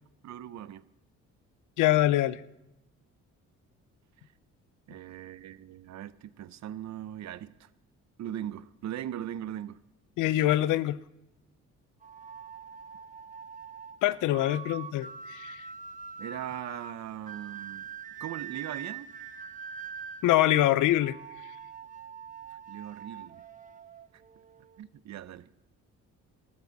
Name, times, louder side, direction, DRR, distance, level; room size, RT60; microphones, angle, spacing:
voice 1, 0.2-0.8 4.9-7.7 8.2-9.8 16.2-17.9 18.2-19.2 22.7-23.4 24.8-25.5, right 11 dB, 65° right, 0.7 m, -39 dB
voice 2, 1.8-2.4 10.2-11.0 14.0-15.7 20.2-21.2, left 14 dB, 85° left, 0.6 m, -24 dB
sound 1, 12.0-24.8, right 6 dB, 25° right, 1.0 m, -44 dB
20.0 x 13.5 x 4.0 m
cardioid pair, 90°, 30 cm